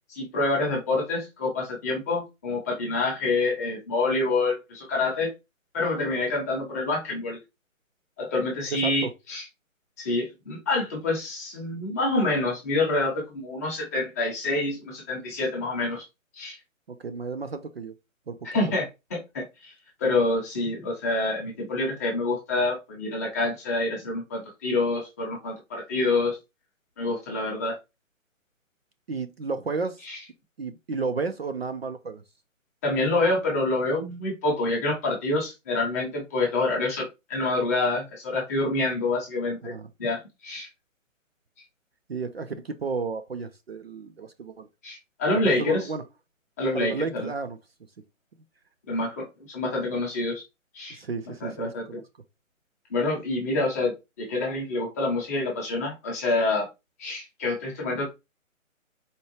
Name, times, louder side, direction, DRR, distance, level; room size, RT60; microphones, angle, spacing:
voice 1, 0.1-5.3 5.7-7.4 8.2-9.4 10.0-16.0 16.3-16.6 18.5-19.7 20.0-26.4 27.0-27.8 30.0-30.2 32.8-37.0 37.3-39.7 40.0-40.7 44.8-45.9 46.6-47.3 48.9-50.4 50.7-51.0 51.4-51.8 52.9-56.7 57.0-58.1, left 2 dB, 10° left, 0.8 m, -27 dB
voice 2, 8.7-9.1 16.9-17.9 18.3-18.6 29.1-30.0 30.6-32.2 39.6-39.9 42.1-44.7 45.4-46.0 46.7-47.6 50.9-52.0, right 4 dB, 50° right, 0.5 m, -32 dB
4.3 x 2.3 x 3.2 m
figure-of-eight pair, 150°, 41 cm